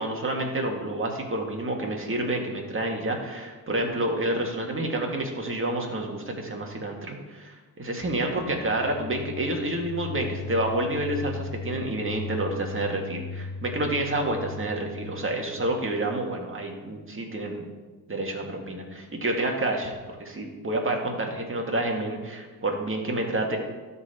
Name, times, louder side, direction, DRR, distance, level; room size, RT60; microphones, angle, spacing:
voice 1, 0.0-17.6 18.1-19.9 20.2-23.6, right 1 dB, 35° right, 1 dB, 1.9 m, -29 dB
sound 1, 8.0-15.8, left 4 dB, 70° left, 0.7 m, -38 dB
12.5 x 4.3 x 4.4 m, 1.3 s
supercardioid pair, 60°, 38 cm